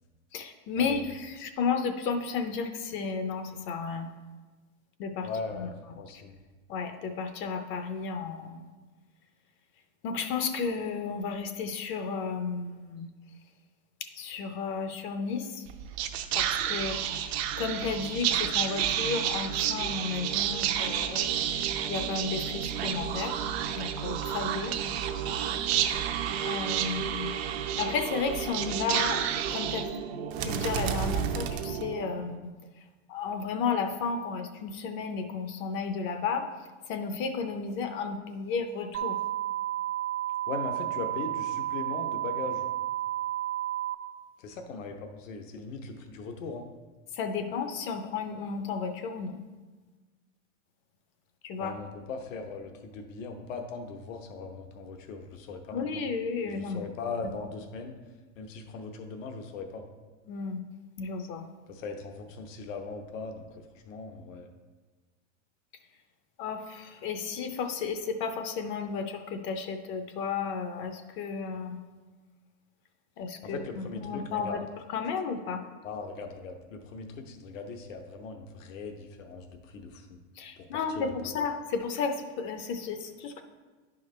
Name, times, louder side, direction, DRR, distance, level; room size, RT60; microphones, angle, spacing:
voice 1, 0.3-4.1 5.0-5.7 6.7-8.6 10.0-13.1 14.0-15.7 16.3-23.4 23.8-24.7 26.4-27.3 27.8-29.3 29.5-29.9 30.4-32.5 33.1-36.5 36.9-39.2 47.1-49.4 51.4-51.8 55.7-56.9 60.3-60.6 61.0-61.5 66.4-71.8 73.2-74.6 74.9-75.6 80.4-83.4, left 5 dB, 35° left, 7 dB, 0.5 m, -33 dB
voice 2, 5.2-6.4 40.5-42.6 44.4-46.7 51.6-56.0 56.4-58.0 58.4-59.9 61.7-64.5 73.4-74.6 75.8-80.2 80.6-81.3, left 4 dB, 80° left, 5 dB, 1.0 m, -39 dB
Whispering, 15.7-32.2, right 9 dB, 55° right, 0.6 m, -30 dB
sound 1, 38.9-43.9, right 13 dB, 85° right, 1.0 m, -32 dB
10.5 x 4.9 x 3.2 m, 1.3 s
supercardioid pair, 135°, 38 cm